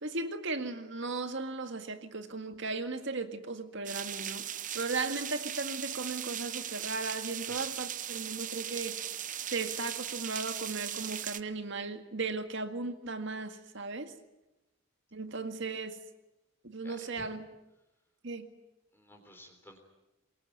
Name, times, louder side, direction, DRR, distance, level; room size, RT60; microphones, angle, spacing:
voice 1, 0.0-4.4 4.7-9.0 9.5-14.1 15.1-16.0 16.6-17.4 18.2-18.5, right 3 dB, 65° right, 8 dB, 2.0 m, -36 dB
sound 1, 3.9-11.4, right 10 dB, 40° right, 0.8 m, -38 dB
voice 2, 16.8-17.2 18.9-19.8, equal, 10° left, 3 dB, 3.6 m, -53 dB
24.0 x 22.0 x 9.3 m, 0.95 s
head